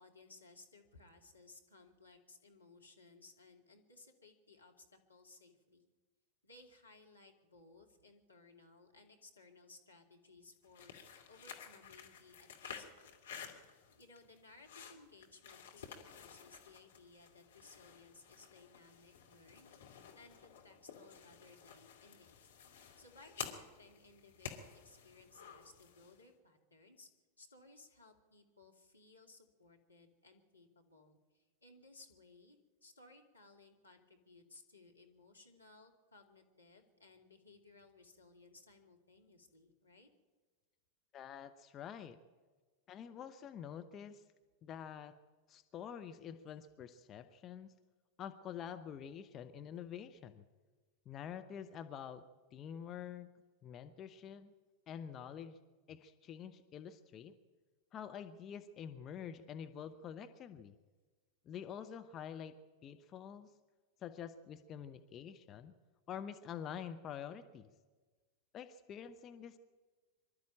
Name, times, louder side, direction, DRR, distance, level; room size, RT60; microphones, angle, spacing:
voice 1, 0.0-5.8 6.4-10.9 11.3-13.2 13.9-19.7 20.1-22.5 23.0-27.1 27.4-40.1, left 3 dB, 80° left, 1 dB, 2.6 m, -61 dB
sound 1, 10.6-26.2, left 7 dB, 65° left, 2.6 m, -52 dB
voice 2, 41.1-42.2 42.9-44.2 44.6-45.2 45.5-47.7 48.2-50.4 51.1-52.2 52.5-53.3 53.6-54.5 54.9-55.6 55.9-57.3 57.9-60.8 61.4-62.6 62.8-63.5 64.0-65.7 66.1-67.7 68.5-69.6, left 8 dB, 30° left, 9 dB, 0.9 m, -47 dB
24.5 x 12.5 x 8.7 m, 1.4 s
figure-of-eight pair, 90°, 0 cm